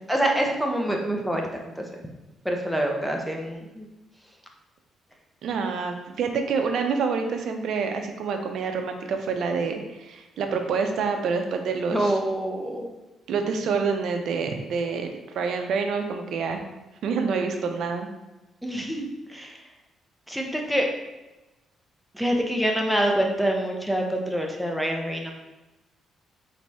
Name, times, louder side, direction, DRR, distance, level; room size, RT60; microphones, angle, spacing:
voice 1, 0.1-1.5 1.8-1.9 2.4-3.9 11.9-12.9 18.6-19.6 20.3-20.9 22.1-25.3, right 1 dB, ahead, 1 dB, 0.7 m, -26 dB
voice 2, 5.4-12.2 13.3-16.6 17.0-18.1, right 5 dB, 70° right, 5 dB, 0.5 m, -27 dB
4.0 x 3.2 x 3.4 m, 1.0 s
cardioid pair, 90°, 0 cm